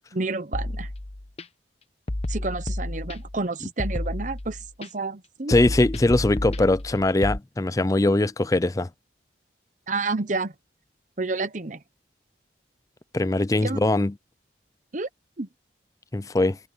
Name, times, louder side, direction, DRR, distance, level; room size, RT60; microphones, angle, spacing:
voice 1, 0.1-0.9 2.3-5.6 9.9-10.5 11.2-11.8 13.6-13.8 14.9-15.1 15.4-15.5, right 3 dB, 45° right, 1.0 m, -30 dB
sound 1, 0.5-1.4 2.1-3.4 3.8-4.9 5.5-7.4, left 1 dB, 35° left, 0.9 m, -31 dB
voice 2, 5.5-8.9 13.1-14.1 16.1-16.6, left 2 dB, 20° left, 0.4 m, -21 dB
head